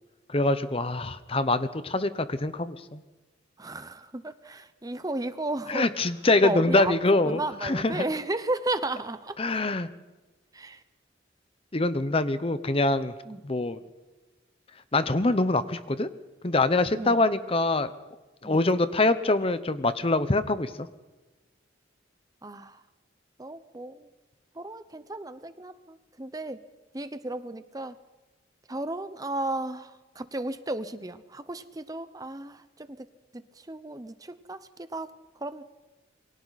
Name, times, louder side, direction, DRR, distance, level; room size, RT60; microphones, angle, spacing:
voice 1, 0.3-3.0 5.7-8.1 9.4-9.9 11.7-13.1 13.4-13.8 14.9-16.1 16.4-17.9 18.4-20.9, left 2 dB, 30° left, 12 dB, 0.9 m, -24 dB
voice 2, 3.6-5.9 6.4-6.9 7.2-9.4 10.5-10.8 13.3-13.4 17.0-17.2 18.4-18.7 22.4-22.8 23.4-24.1 24.5-26.6 26.9-28.0 28.7-33.1 33.3-35.6, right 2 dB, 20° right, 12 dB, 0.9 m, -34 dB
28.5 x 23.5 x 4.2 m, 1.2 s
head